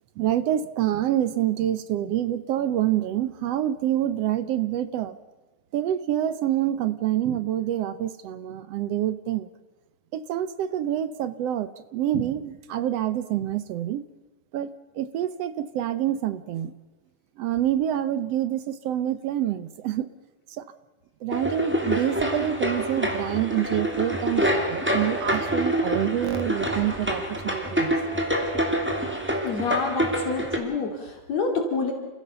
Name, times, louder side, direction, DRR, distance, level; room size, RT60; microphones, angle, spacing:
voice 1, 0.2-5.2 5.7-9.5 10.1-14.0 14.5-14.7 14.9-16.7 17.4-20.1 20.6-20.7 21.2-28.0, right 11 dB, 70° right, 13 dB, 1.7 m, -27 dB
sound 1, 21.3-30.6, equal, 5° right, 2.6 m, -26 dB
voice 2, 29.4-31.9, left 4 dB, 60° left, 3 dB, 3.7 m, -28 dB
28.5 x 16.0 x 6.8 m, 1.3 s
omnidirectional pair, 3.5 m